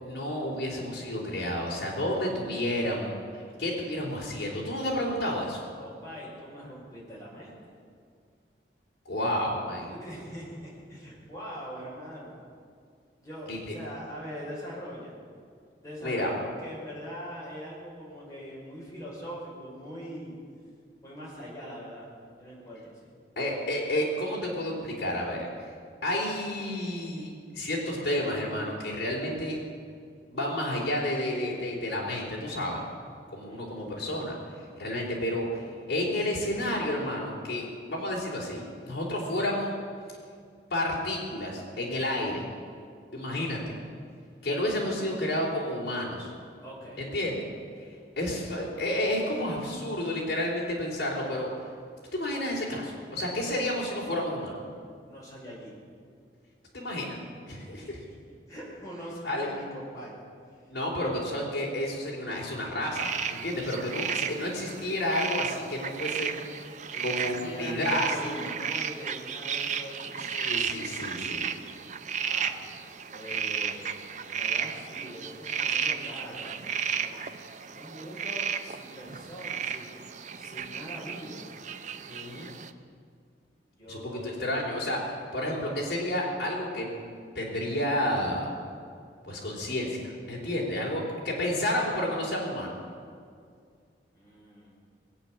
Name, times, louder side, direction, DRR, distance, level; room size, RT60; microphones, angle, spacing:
voice 1, 0.0-5.6 9.1-9.9 13.5-13.7 16.0-16.3 23.4-25.5 26.0-29.6 30.3-32.8 33.3-39.7 40.7-42.4 43.1-43.6 44.4-46.3 47.0-47.4 48.2-51.5 52.1-54.6 56.7-57.2 57.5-58.0 59.2-59.5 60.7-66.6 67.0-68.5 70.3-71.5 82.1-82.5 83.9-87.0 87.3-88.5 89.2-92.8, left 1 dB, 55° left, -4 dB, 3.9 m, -31 dB
voice 2, 5.8-7.7 10.0-12.3 13.2-15.1 15.8-20.3 21.0-22.1 22.4-23.0 33.4-33.8 46.6-47.0 49.3-49.4 55.0-55.8 57.5-58.1 58.5-60.2 60.5-60.6 66.9-70.2 72.2-72.6 73.1-73.9 74.2-77.2 77.8-81.4 83.7-84.4 94.1-94.7, equal, 20° left, -6 dB, 5.3 m, -42 dB
sound 1, 62.9-82.7, right 7 dB, 40° right, 0.6 m, -34 dB
20.5 x 8.7 x 7.5 m, 2.2 s
head